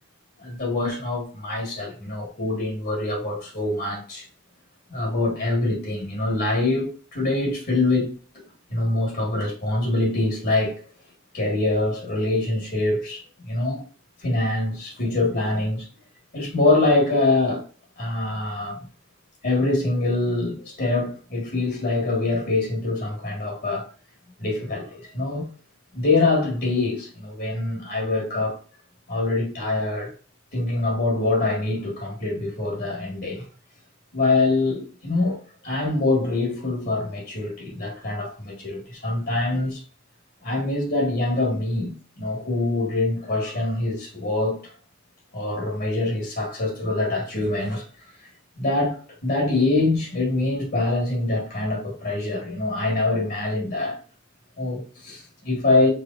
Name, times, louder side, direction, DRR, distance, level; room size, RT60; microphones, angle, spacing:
voice 1, 0.4-4.3 4.9-8.1 8.3-8.4 8.7-10.8 11.3-13.8 14.2-15.9 16.3-17.6 18.0-18.8 19.4-23.9 24.4-25.5 25.9-28.6 29.1-30.1 30.5-33.5 34.1-35.4 35.6-39.8 40.4-44.7 45.3-47.9 48.2-48.3 48.6-54.0 54.6-55.9, left 2 dB, 50° left, 1.7 m, -24 dB
5.0 x 4.0 x 2.5 m
head